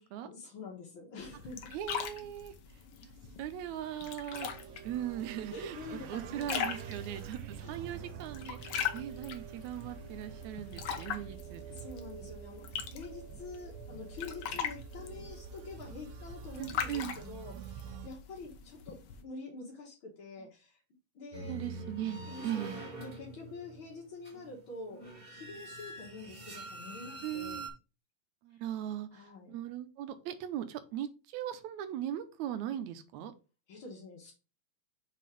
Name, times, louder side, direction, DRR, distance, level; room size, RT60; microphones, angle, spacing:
voice 1, 0.2-1.7 5.5-7.8 11.1-11.2 11.7-19.0 19.2-20.8 21.1-21.5 22.2-27.6 29.1-29.5 33.7-34.3, left 3 dB, 50° left, -5 dB, 1.8 m, -47 dB
sound 1, 1.2-19.2, left 8 dB, 75° left, 1.4 m, -42 dB
voice 2, 1.7-2.5 3.0-3.1 3.4-4.5 4.8-11.6 16.6-17.1 21.4-22.8 27.2-27.7 28.4-33.3, right 11 dB, 75° right, 10 dB, 1.9 m, -39 dB
sound 2, 4.3-18.1, right 7 dB, 90° right, 2.4 m, -47 dB
sound 3, 21.3-27.7, right 2 dB, 35° right, 0.9 m, -45 dB
6.0 x 4.2 x 5.2 m, 0.32 s
omnidirectional pair, 3.9 m